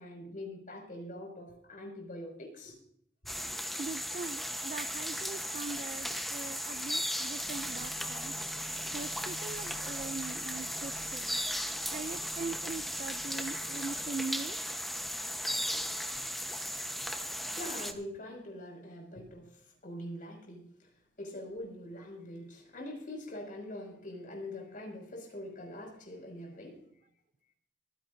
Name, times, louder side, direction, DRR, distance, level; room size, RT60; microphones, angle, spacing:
voice 1, 0.0-2.8 3.2-3.4 17.3-20.9 21.2-26.8, left 1 dB, 50° left, 6.0 m, -44 dB
sound 1, 3.3-17.9, equal, ahead, 1.0 m, -36 dB
voice 2, 3.8-8.3 8.9-11.4 11.9-14.6, right 4 dB, 45° right, 0.4 m, -41 dB
sound 2, 7.4-14.1, right 1 dB, 65° right, 1.4 m, -52 dB
25.0 x 10.5 x 2.7 m
head